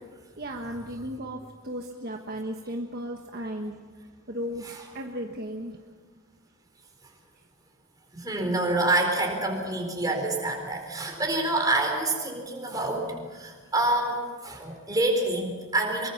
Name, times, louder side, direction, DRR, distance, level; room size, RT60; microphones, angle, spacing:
voice 1, 0.4-3.8 4.3-6.0, equal, 45° right, 2 dB, 1.4 m, -35 dB
voice 2, 8.1-16.1, right 2 dB, 15° right, 2 dB, 4.3 m, -27 dB
25.0 x 23.0 x 5.9 m, 1.4 s
head